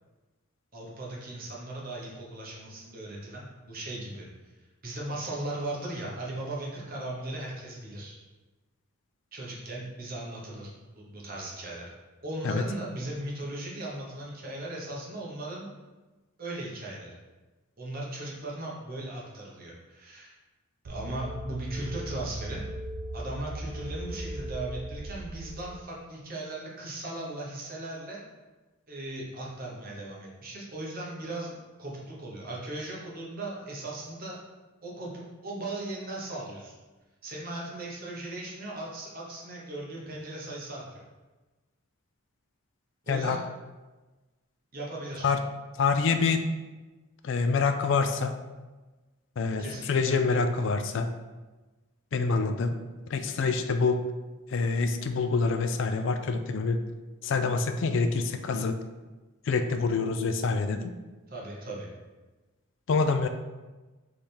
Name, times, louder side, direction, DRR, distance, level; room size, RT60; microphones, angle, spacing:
voice 1, 0.7-4.3 4.8-8.2 9.3-10.7 11.0-11.9 12.2-15.7 16.4-17.1 17.8-20.4 20.8-22.7 23.1-28.2 28.9-34.4 34.8-36.7 37.2-41.0 43.0-43.4 44.7-45.3 49.6-50.2 61.3-61.9, right 2 dB, 40° right, -3 dB, 0.9 m, -38 dB
sound 1, 20.9-25.8, right 1 dB, 65° right, 0.4 m, -38 dB
voice 2, 43.1-43.4 45.2-45.4 45.7-46.4 47.2-48.3 49.4-51.1 52.1-52.8 53.1-54.0 54.5-56.8 57.2-58.8 59.5-60.9 62.9-63.3, left 4 dB, 55° left, 8 dB, 0.3 m, -26 dB
3.5 x 3.3 x 4.3 m, 1.2 s
head